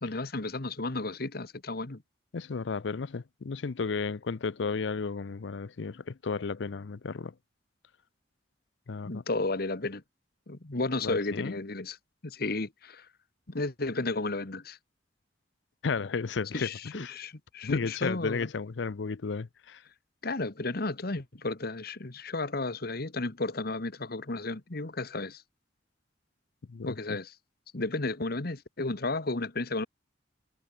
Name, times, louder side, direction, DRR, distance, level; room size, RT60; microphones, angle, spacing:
voice 1, 0.0-2.0 9.1-10.0 10.5-12.0 12.2-13.1 13.5-14.8 16.5-18.5 20.2-25.4 26.8-27.3 27.7-29.9, left 2 dB, 55° left, 1.5 m, -33 dB
voice 2, 2.3-7.3 8.9-9.2 11.0-11.6 15.8-17.1 17.6-19.8 26.7-27.2, left 4 dB, 80° left, 0.6 m, -33 dB
head